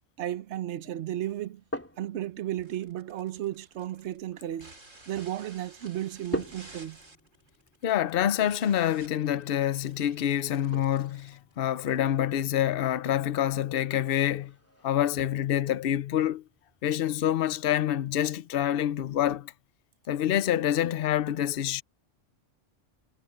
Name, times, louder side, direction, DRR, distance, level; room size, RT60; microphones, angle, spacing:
voice 1, 0.2-1.6 2.0-4.7 5.1-7.0, right 12 dB, 65° right, 1.1 m, -34 dB
sound 1, 1.3-19.3, left 1 dB, 10° left, 3.1 m, -46 dB
sound 2, 2.6-12.2, right 2 dB, 85° right, 4.8 m, -54 dB
voice 2, 7.8-14.5 14.8-16.4 16.8-19.5 20.1-21.8, left 11 dB, 55° left, 0.8 m, -27 dB
omnidirectional pair, 1.3 m